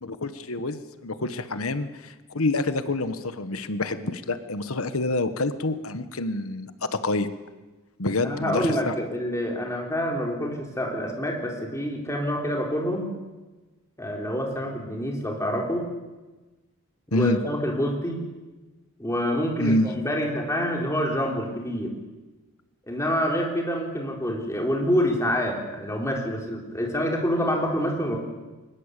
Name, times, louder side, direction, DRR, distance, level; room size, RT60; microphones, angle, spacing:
voice 1, 0.0-7.3 8.0-8.9 17.1-17.4 19.6-19.9, left 2 dB, 75° left, 11 dB, 1.3 m, -27 dB
voice 2, 8.2-13.1 14.0-15.9 17.1-18.2 19.0-21.9 22.9-28.2, equal, 15° left, 0 dB, 4.0 m, -27 dB
22.5 x 20.5 x 8.4 m, 1.2 s
head